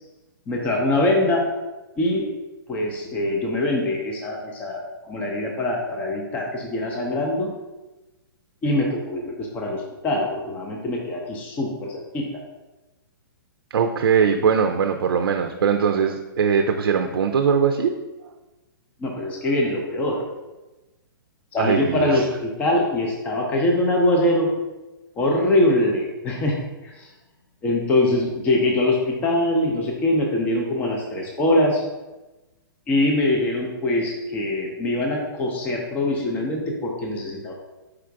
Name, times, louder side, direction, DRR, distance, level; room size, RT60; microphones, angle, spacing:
voice 1, 0.5-1.5 2.0-2.3 2.7-7.5 8.6-12.3 19.0-20.2 21.5-24.5 25.2-26.6 26.8-27.1 27.6-31.8 32.9-37.5, left 1 dB, 15° left, 0 dB, 0.4 m, -23 dB
voice 2, 13.7-17.9 21.6-22.2, right 6 dB, 80° right, 5 dB, 0.4 m, -21 dB
4.7 x 2.5 x 4.5 m, 1.1 s
hypercardioid pair, 150°, 12 cm